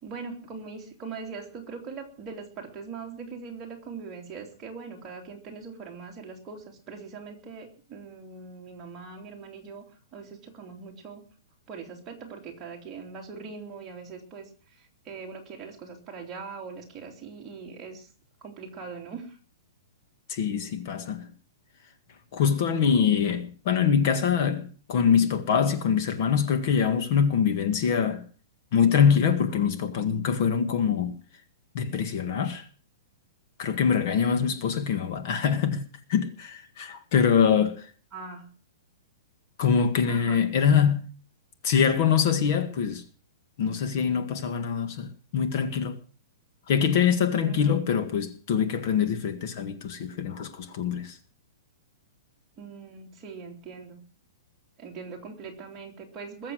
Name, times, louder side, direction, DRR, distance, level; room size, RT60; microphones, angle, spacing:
voice 1, 0.0-9.8 10.1-11.2 11.7-18.1 18.4-19.4 38.1-38.5 40.1-40.4 47.5-47.9 52.6-54.0 54.8-56.5, right 5 dB, 15° right, 3.1 m, -41 dB
voice 2, 20.3-21.3 22.3-28.2 28.7-31.2 31.7-32.6 33.6-37.9 39.6-41.0 41.6-43.0 43.6-45.9 46.7-51.2, left 7 dB, 40° left, 1.8 m, -24 dB
21.5 x 7.4 x 7.9 m
hypercardioid pair, 170°, 2 cm